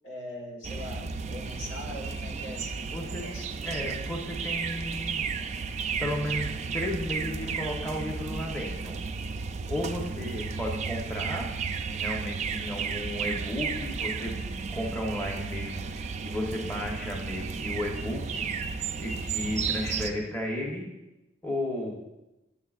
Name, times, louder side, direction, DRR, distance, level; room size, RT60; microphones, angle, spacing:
voice 1, 0.0-3.5 3.8-4.0, left 1 dB, 75° left, 0 dB, 1.5 m, -42 dB
sound 1, 0.6-20.1, right 5 dB, 35° right, 0.3 m, -33 dB
voice 2, 2.9-3.3 3.6-5.3 6.0-8.9 9.7-11.5 11.9-14.5 14.7-18.5 19.0-20.9 21.4-22.0, left 1 dB, 10° left, -2 dB, 0.8 m, -34 dB
10.0 x 7.5 x 2.4 m, 0.97 s
head